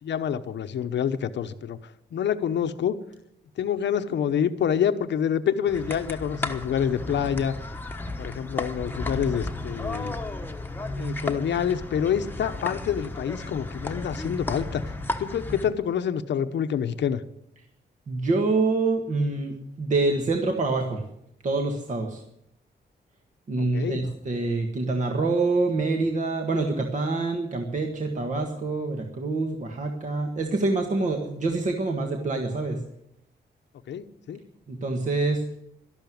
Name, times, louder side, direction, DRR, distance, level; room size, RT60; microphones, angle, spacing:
voice 1, 0.0-1.8 2.1-3.0 3.6-7.5 8.2-10.1 11.0-14.8 15.2-17.2 23.6-24.0 33.9-34.4, left 8 dB, 85° left, 10 dB, 1.0 m, -27 dB
sound 1, 5.7-15.7, left 2 dB, 10° left, 1.2 m, -33 dB
voice 2, 18.1-21.0 21.4-22.2 23.5-32.8 34.7-35.4, right 3 dB, 45° right, 3 dB, 1.7 m, -26 dB
12.5 x 12.0 x 9.4 m, 0.78 s
wide cardioid pair, 145°, 18 cm